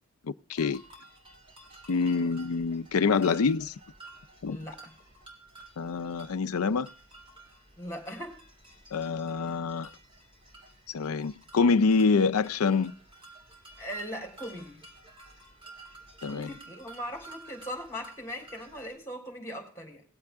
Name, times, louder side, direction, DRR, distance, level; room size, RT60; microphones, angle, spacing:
voice 1, 0.5-0.8 1.9-3.7 4.4-4.6 5.8-6.9 8.9-9.9 10.9-12.9 16.2-16.5, left 4 dB, 90° left, 0.5 m, -26 dB
sound 1, 0.6-18.9, right 2 dB, 25° right, 2.9 m, -52 dB
voice 2, 4.5-4.9 7.8-8.4 13.8-14.8 16.3-20.0, equal, 15° left, 3.7 m, -39 dB
19.0 x 7.7 x 3.5 m
head